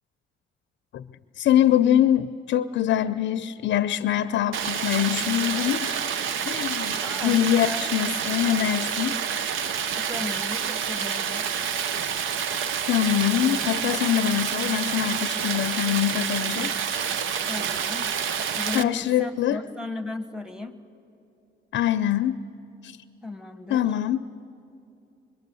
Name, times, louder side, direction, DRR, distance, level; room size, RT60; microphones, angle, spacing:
voice 1, 1.4-6.0 6.5-7.0 7.2-9.2 12.9-16.7 18.7-19.6 21.7-22.4 22.8-23.0 23.7-24.2, left 11 dB, 65° left, 11 dB, 0.5 m, -24 dB
Stream, 4.5-18.8, right 7 dB, 80° right, 0.8 m, -28 dB
voice 2, 7.0-7.9 9.8-11.5 17.5-18.1 18.5-20.8 23.2-23.9, left 2 dB, 5° right, 7 dB, 1.3 m, -36 dB
25.0 x 23.0 x 6.9 m, 2.6 s
cardioid pair, 90°, 20 cm